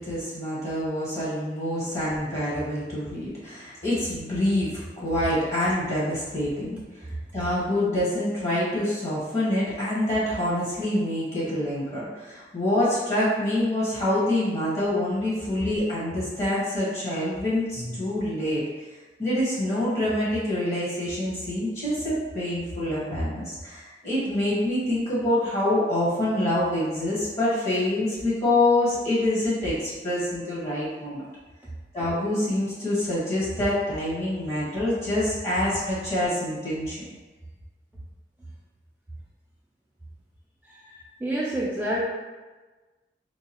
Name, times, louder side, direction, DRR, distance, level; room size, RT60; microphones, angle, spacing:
voice 1, 0.0-18.6 19.2-31.2 31.9-37.0 40.9-41.0, left 1 dB, 40° left, -8 dB, 1.1 m, -26 dB
voice 2, 41.2-42.0, right 1 dB, 10° right, -6 dB, 0.3 m, -27 dB
4.6 x 2.3 x 2.8 m, 1.3 s
head